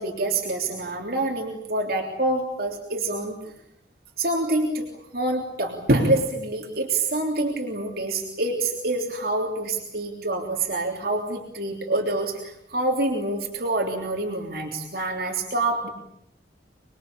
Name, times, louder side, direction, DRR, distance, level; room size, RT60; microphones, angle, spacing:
voice 1, 0.0-3.4 4.2-4.8 5.1-15.9, right 2 dB, 55° right, 1 dB, 3.4 m, -26 dB
27.0 x 22.0 x 8.7 m, 0.78 s
head